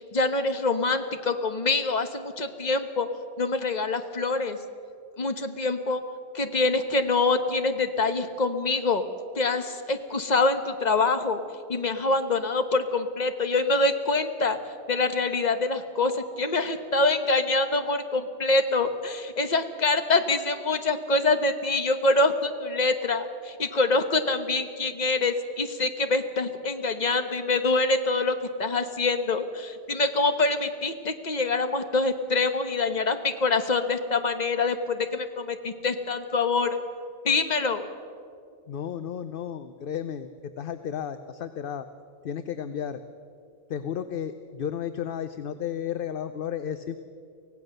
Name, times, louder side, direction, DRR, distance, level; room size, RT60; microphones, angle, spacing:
voice 1, 0.0-3.1 3.4-4.6 5.2-6.0 6.3-9.0 9.4-11.4 11.7-14.6 14.9-36.8 37.2-37.9, left 3 dB, 40° left, 8 dB, 1.2 m, -25 dB
voice 2, 38.7-41.9 42.2-43.0 43.7-47.0, left 8 dB, 60° left, 11 dB, 0.8 m, -33 dB
24.5 x 16.5 x 6.6 m, 2.4 s
omnidirectional pair, 1.1 m